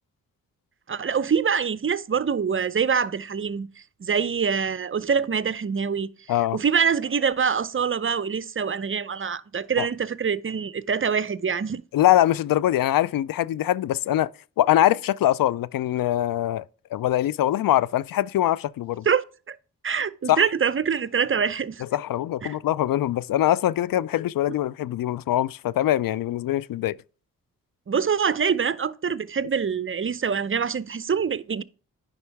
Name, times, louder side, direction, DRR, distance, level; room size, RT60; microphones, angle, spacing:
voice 1, 0.9-3.7 4.0-6.1 6.5-11.8 19.1-19.6 19.8-21.8 22.4-22.5 27.9-31.6, right 6 dB, 35° right, 0.6 m, -25 dB
voice 2, 11.9-14.3 14.6-16.6 16.9-19.1 20.3-20.5 21.8-27.0, left 13 dB, 65° left, 0.5 m, -23 dB
9.8 x 5.4 x 3.4 m
supercardioid pair, 45°, 36 cm